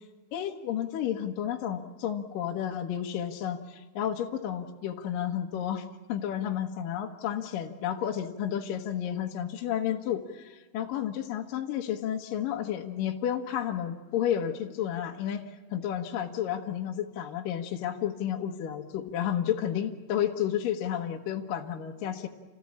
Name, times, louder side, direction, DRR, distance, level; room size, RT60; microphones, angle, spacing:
voice 1, 0.3-22.3, left 10 dB, 65° left, 2 dB, 2.4 m, -31 dB
29.0 x 18.5 x 8.6 m, 1.3 s
omnidirectional pair, 5.3 m